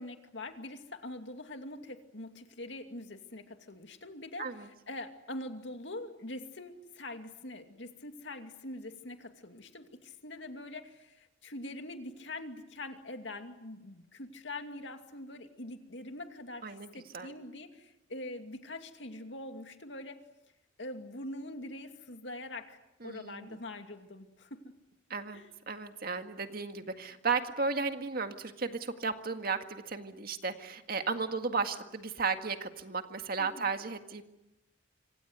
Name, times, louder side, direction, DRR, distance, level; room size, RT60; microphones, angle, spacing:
voice 1, 0.0-20.2 20.8-24.7 25.3-25.5 33.4-33.7, left 1 dB, 65° left, 6 dB, 2.6 m, -44 dB
voice 2, 23.0-23.6 25.1-25.4 25.7-34.2, right 4 dB, 50° right, 7 dB, 1.9 m, -34 dB
26.0 x 26.0 x 8.0 m, 0.93 s
head